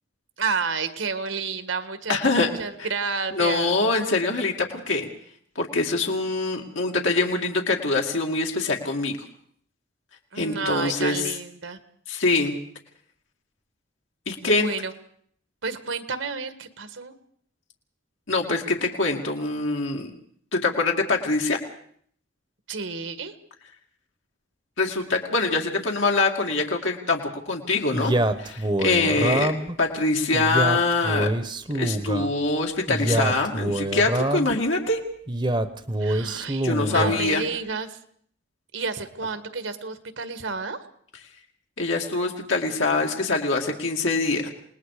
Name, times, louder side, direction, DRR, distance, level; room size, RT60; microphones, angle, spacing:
voice 1, 0.4-3.7 10.3-11.8 14.5-14.9 15.6-17.1 22.7-23.3 36.0-38.0 38.7-40.8, right 4 dB, 80° right, 10 dB, 1.7 m, -31 dB
voice 2, 2.1-2.5 3.3-5.1 5.6-9.2 10.4-11.3 12.1-12.6 14.3-14.7 18.3-20.1 20.5-21.6 24.8-29.5 29.8-31.3 31.7-35.0 36.6-37.4 41.8-44.5, left 3 dB, 80° left, 1 dB, 2.4 m, -24 dB
Male speech man speaking, 27.9-29.8 30.3-32.3 32.9-34.6 35.3-37.3, right 1 dB, 25° right, 0.9 m, -25 dB
28.0 x 19.5 x 5.0 m, 0.62 s
head